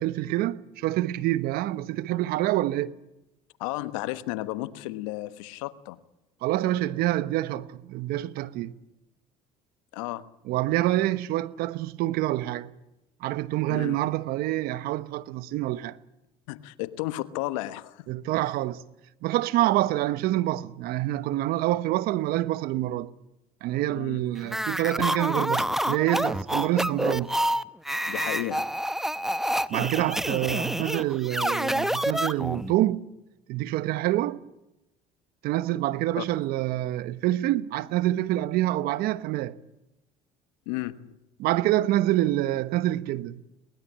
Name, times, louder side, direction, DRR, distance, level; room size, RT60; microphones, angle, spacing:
voice 1, 0.0-2.9 6.4-8.8 10.5-12.7 13.2-16.0 18.1-18.8 19.2-23.1 23.6-27.4 29.7-33.0 33.5-34.4 35.4-39.5 41.4-43.4, right 15 dB, 70° right, 1.2 m, -26 dB
voice 2, 3.6-6.0 9.9-10.2 13.7-14.0 16.5-18.1 23.9-24.2 28.1-28.7 36.2-36.3 40.7-41.1, left 17 dB, 90° left, 1.2 m, -33 dB
sound 1, 24.4-32.7, equal, ahead, 0.9 m, -28 dB
22.5 x 20.0 x 8.8 m
supercardioid pair, 90°, 16 cm